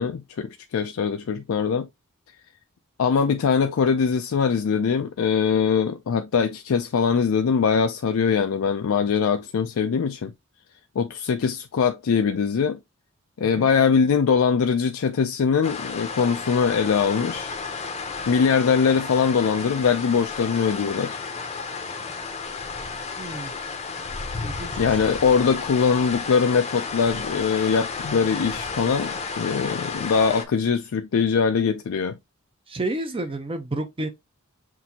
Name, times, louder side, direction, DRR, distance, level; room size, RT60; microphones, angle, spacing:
voice 1, 0.0-1.9 3.0-10.3 11.0-12.8 13.4-17.5 18.3-21.2 24.8-32.2, left 6 dB, 65° left, 0.4 m, -22 dB
sound 1, 15.6-30.5, left 4 dB, 30° left, 0.7 m, -32 dB
voice 2, 23.2-23.5 24.4-24.7 32.7-34.1, right 2 dB, 25° right, 0.6 m, -30 dB
6.0 x 2.6 x 2.8 m
head